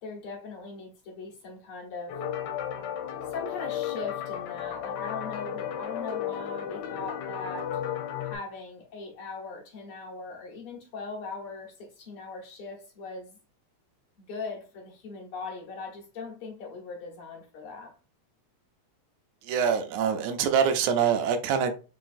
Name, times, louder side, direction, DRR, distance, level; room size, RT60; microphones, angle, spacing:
voice 1, 0.0-2.2 3.3-7.8 8.2-13.4 14.2-17.9, left 4 dB, 55° left, 1.9 m, -40 dB
sound 1, 2.1-8.4, left 9 dB, 80° left, 2.1 m, -34 dB
voice 2, 19.4-21.7, right 7 dB, 85° right, 2.1 m, -25 dB
4.8 x 3.7 x 2.6 m
omnidirectional pair, 3.3 m